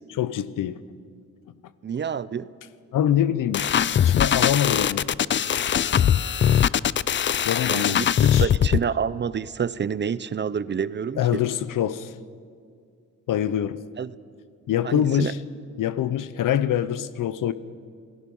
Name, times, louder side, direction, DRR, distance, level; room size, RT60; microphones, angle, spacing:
voice 1, 0.2-0.8 2.9-3.7 4.0-5.1 7.4-8.5 11.2-12.1 13.3-13.8 14.7-15.4 15.8-17.5, left 10 dB, 80° left, 0.9 m, -24 dB
voice 2, 1.8-2.5 7.7-8.1 8.4-11.4 14.0-14.1 14.8-15.3, right 7 dB, 35° right, 0.6 m, -28 dB
sound 1, 3.5-8.8, left 9 dB, 40° left, 0.4 m, -21 dB
28.0 x 18.0 x 5.5 m
cardioid pair, 100°, 31 cm